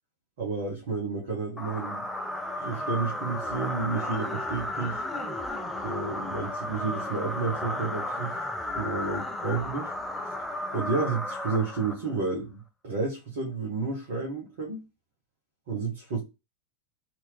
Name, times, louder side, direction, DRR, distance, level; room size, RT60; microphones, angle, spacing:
voice 1, 0.4-2.1 2.6-5.0 5.8-8.3 8.7-9.9 10.7-14.8 15.7-16.2, right 4 dB, 55° right, 0.9 m, -31 dB
sound 1, 1.6-12.3, left 1 dB, 5° left, 0.4 m, -33 dB
2.9 x 2.5 x 3.2 m
figure-of-eight pair, 90°, 0 cm